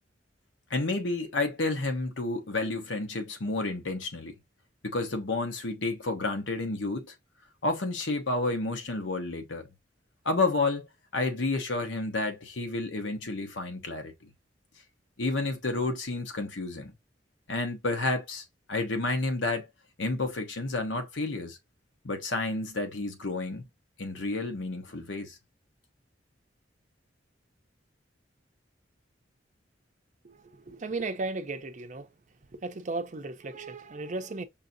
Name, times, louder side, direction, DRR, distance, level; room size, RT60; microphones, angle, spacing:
voice 1, 0.7-4.3 4.8-7.1 7.6-9.7 10.2-10.9 11.1-14.3 15.2-16.9 17.5-19.7 20.0-21.6 22.0-23.6 24.0-25.4, left 2 dB, 85° left, 1.0 m, -30 dB
voice 2, 30.2-32.1 32.5-34.4, right 3 dB, 40° right, 0.5 m, -35 dB
5.6 x 2.5 x 2.6 m
head